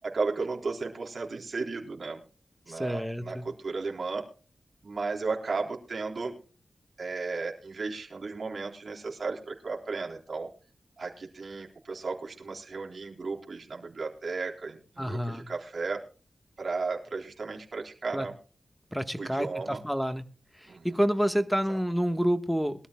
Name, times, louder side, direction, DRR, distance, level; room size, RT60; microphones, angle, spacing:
voice 1, 0.0-2.2 2.7-4.3 4.8-6.3 7.0-10.5 11.0-16.0 16.6-18.3 19.2-19.8 20.7-21.0, right 4 dB, 60° right, 1 dB, 3.8 m, -34 dB
voice 2, 2.7-3.4 15.0-15.4 18.1-18.3 18.9-20.2 20.5-22.9, equal, ahead, 9 dB, 1.4 m, -28 dB
22.0 x 13.0 x 2.3 m, 0.36 s
wide cardioid pair, 75°, 0 cm